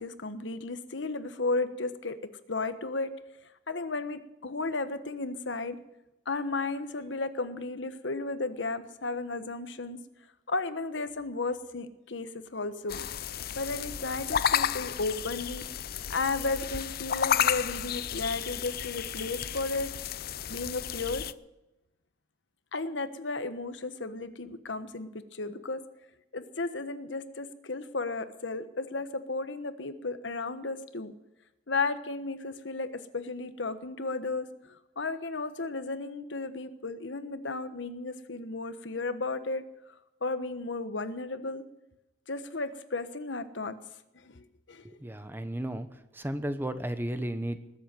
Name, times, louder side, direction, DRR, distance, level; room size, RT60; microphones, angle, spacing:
voice 1, 0.0-2.2 2.5-3.1 3.7-5.8 6.2-10.0 10.5-13.0 13.5-15.6 16.1-19.9 20.5-21.2 22.7-25.8 26.3-31.1 31.7-39.6 40.2-41.6 42.3-43.7 44.1-45.0, left 3 dB, 80° left, 10 dB, 1.3 m, -34 dB
sound 1, 12.9-21.3, left 9 dB, 55° left, 0.5 m, -32 dB
voice 2, 44.8-45.9 46.1-47.6, right 1 dB, 10° right, 10 dB, 1.0 m, -34 dB
20.0 x 7.9 x 9.1 m, 0.93 s
head